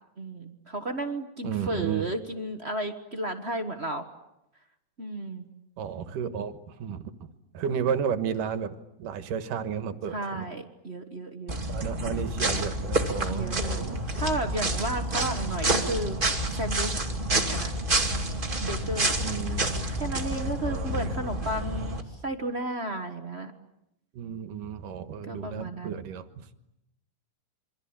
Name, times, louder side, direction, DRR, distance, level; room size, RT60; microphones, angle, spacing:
voice 1, 0.2-4.1 5.0-5.4 10.1-11.6 13.3-16.2 16.5-16.9 17.3-17.7 18.6-19.1 20.0-23.5 25.2-26.0, right 2 dB, 60° right, 6 dB, 0.6 m, -33 dB
voice 2, 1.4-2.1 5.8-7.3 7.5-10.4 11.7-14.2 19.2-19.6 20.7-21.1 24.1-26.5, right 7 dB, 80° right, 11 dB, 3.0 m, -33 dB
sound 1, 11.5-22.0, right 1 dB, 15° right, 2.1 m, -28 dB
27.5 x 24.5 x 8.8 m, 0.85 s
omnidirectional pair, 3.7 m